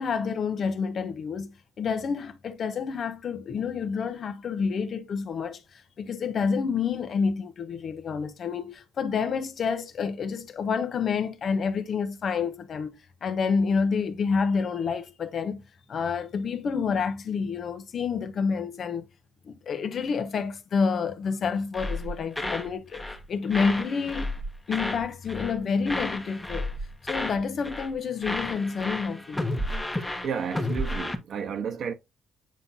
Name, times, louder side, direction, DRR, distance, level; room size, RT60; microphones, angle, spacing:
voice 1, 0.0-15.6 15.9-19.1 19.4-23.0 23.3-24.3 24.7-26.7 27.1-29.5, left 5 dB, 55° left, 1.1 m, -28 dB
sound 1, 21.7-22.7 22.9-23.2 23.5-25.0 25.3-25.6 25.9-27.4 27.6-27.9 28.2-31.2, left 1 dB, 10° left, 1.2 m, -32 dB
voice 2, 30.2-31.9, right 6 dB, 65° right, 1.2 m, -32 dB
8.8 x 3.8 x 2.8 m
cardioid pair, 90°, 0 cm